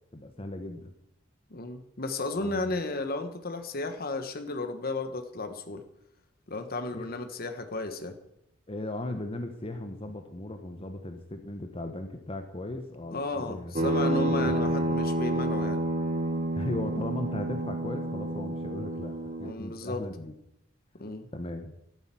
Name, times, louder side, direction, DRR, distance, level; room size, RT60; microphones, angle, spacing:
voice 1, 0.1-0.9 2.4-2.7 6.9-7.2 8.7-15.1 16.5-20.3 21.3-21.7, left 1 dB, 30° left, 6 dB, 1.2 m, -37 dB
voice 2, 1.5-5.8 6.5-8.1 13.1-15.8 19.4-20.0 21.0-21.3, left 2 dB, 50° left, 7 dB, 1.4 m, -33 dB
sound 1, 13.7-19.5, right 1 dB, 40° right, 1.4 m, -29 dB
12.5 x 9.0 x 7.7 m, 0.80 s
head